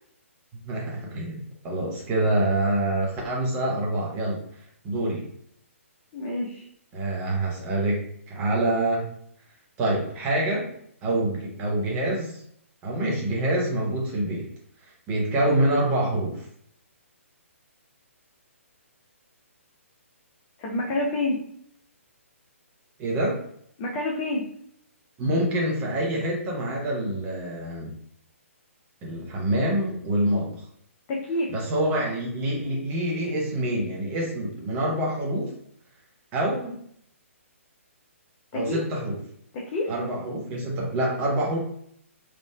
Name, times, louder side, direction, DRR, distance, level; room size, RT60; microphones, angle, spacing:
voice 1, 0.6-4.4 4.8-5.3 6.9-9.1 9.8-10.7 11.0-12.4 12.8-14.5 15.1-16.4 23.0-23.4 25.2-27.9 29.0-30.5 31.5-35.5 36.3-36.8 38.5-39.2 39.9-41.6, right 1 dB, 20° right, -3 dB, 0.9 m, -26 dB
voice 2, 6.1-6.7 20.6-21.4 23.8-24.5 31.1-31.5 38.5-38.8 39.5-39.9, left 2 dB, 20° left, -3 dB, 0.4 m, -28 dB
3.5 x 2.5 x 2.2 m, 0.67 s
figure-of-eight pair, 130°, 8 cm